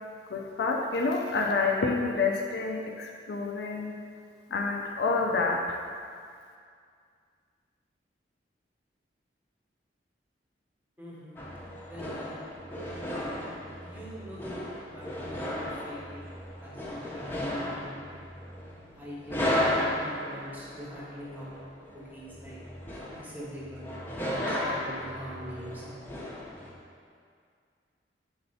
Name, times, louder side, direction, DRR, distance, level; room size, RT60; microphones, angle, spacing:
voice 1, 0.3-3.9 4.5-5.8, left 3 dB, 65° left, 0 dB, 0.4 m, -28 dB
voice 2, 11.0-11.4 11.9-12.4 13.8-16.2 16.6-18.2 19.0-21.5 21.9-22.6 23.1-23.9 24.3-26.2, equal, 10° right, -6 dB, 1.1 m, -43 dB
sound 1, 11.4-26.7, left 1 dB, 10° left, 0.7 m, -35 dB
4.3 x 4.0 x 5.5 m, 2.2 s
head